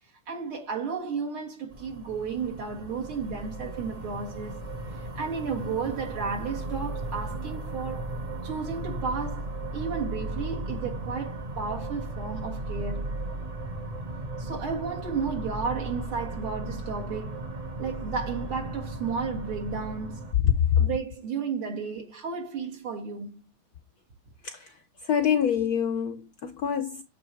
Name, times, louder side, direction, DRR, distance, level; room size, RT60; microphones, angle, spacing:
voice 1, 0.3-8.1 8.4-13.2 14.4-17.5 17.8-20.2 20.8-23.4, right 5 dB, 75° right, 2.5 m, -33 dB
sound 1, 1.7-20.3, right 2 dB, 40° right, 0.5 m, -36 dB
voice 2, 20.4-20.8 24.4-24.7 25.0-27.0, left 8 dB, 75° left, 0.9 m, -25 dB
8.1 x 3.2 x 4.4 m
omnidirectional pair, 2.4 m